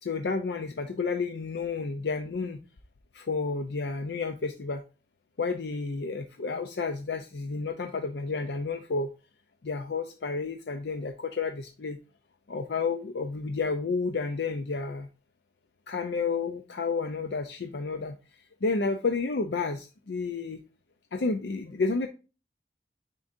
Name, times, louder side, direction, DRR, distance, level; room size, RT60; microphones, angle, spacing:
voice 1, 0.0-2.6 3.1-4.8 5.4-9.1 9.6-12.0 12.5-15.1 15.9-18.2 18.6-20.6 21.1-22.1, left 4 dB, 75° left, 6 dB, 0.5 m, -31 dB
9.4 x 3.8 x 2.6 m, 0.32 s
head